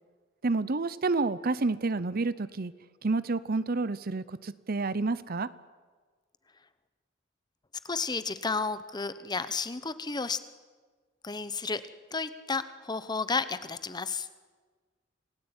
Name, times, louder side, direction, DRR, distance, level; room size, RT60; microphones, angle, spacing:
voice 1, 0.4-2.7 3.0-5.5, right 3 dB, 50° right, 16 dB, 0.8 m, -29 dB
voice 2, 7.8-10.4 11.2-11.8 12.1-14.3, left 4 dB, 20° left, 13 dB, 1.0 m, -32 dB
27.5 x 17.5 x 9.0 m, 1.4 s
head